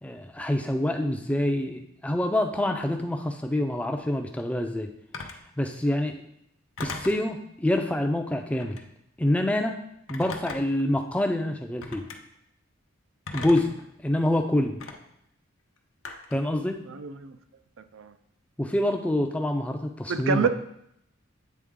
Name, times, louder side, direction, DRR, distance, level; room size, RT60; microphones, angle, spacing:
voice 1, 0.0-4.9 5.6-6.2 6.8-8.8 9.2-9.8 10.1-12.1 13.3-13.7 14.0-14.8 16.3-16.8 18.6-20.5, left 1 dB, 5° left, 4 dB, 0.4 m, -26 dB
Telephone, 5.1-5.5 6.8-7.3 8.5-8.9 10.1-10.8 11.8-12.2 13.3-13.8 14.8-14.9 16.0-16.5, left 4 dB, 70° left, 0.7 m, -38 dB
voice 2, 16.9-17.4 17.9-18.1 20.1-20.5, right 6 dB, 70° right, 11 dB, 0.4 m, -27 dB
8.5 x 3.7 x 3.7 m, 0.77 s
head